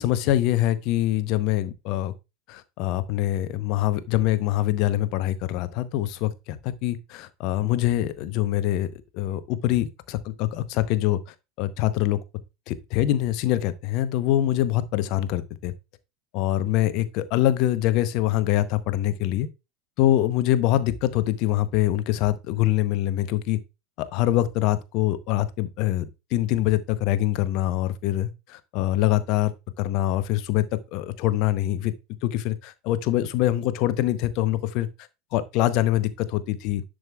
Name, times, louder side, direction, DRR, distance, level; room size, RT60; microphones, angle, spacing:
voice 1, 0.0-2.1 2.5-11.2 11.6-12.2 12.7-15.7 16.3-19.5 20.0-23.6 24.0-26.0 26.3-31.9 32.2-34.9 35.3-36.8, left 14 dB, 50° left, 0.8 m, -24 dB
10.5 x 6.4 x 2.3 m
figure-of-eight pair, 80°, 0 cm